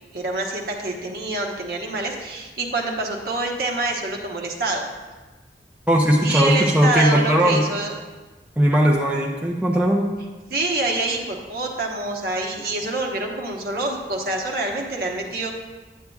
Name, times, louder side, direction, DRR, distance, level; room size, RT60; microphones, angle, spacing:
voice 1, 0.1-4.9 6.2-7.9 10.5-15.6, right 2 dB, 55° right, 0 dB, 1.0 m, -26 dB
voice 2, 5.9-7.6 8.6-10.1, equal, 5° right, -3 dB, 0.5 m, -18 dB
9.2 x 8.4 x 2.3 m, 1.3 s
head